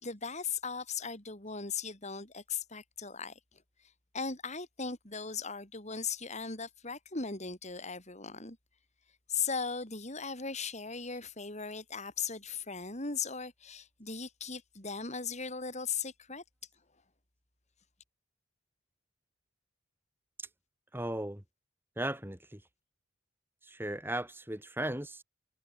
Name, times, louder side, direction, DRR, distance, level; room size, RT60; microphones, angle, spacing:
voice 1, 0.0-3.3 4.1-8.6 9.3-16.4, left 5 dB, 35° left, 5.5 m, -38 dB
voice 2, 20.9-21.4 22.0-22.6 23.6-25.2, right 1 dB, 10° right, 3.0 m, -36 dB
head